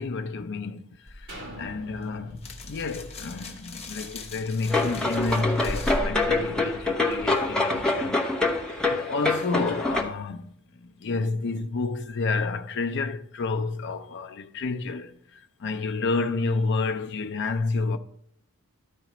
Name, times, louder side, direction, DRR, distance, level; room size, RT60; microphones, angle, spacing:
voice 1, 0.0-8.2 8.9-10.5 10.8-18.0, left 3 dB, 50° left, 0.5 m, -30 dB
sound 1, 1.1-7.4, left 1 dB, 30° left, 1.0 m, -38 dB
sound 2, 1.3-5.1 5.6-5.7, equal, 55° right, 2.4 m, -46 dB
sound 3, 4.7-10.0, left 2 dB, 5° left, 0.8 m, -25 dB
13.0 x 4.9 x 3.0 m
head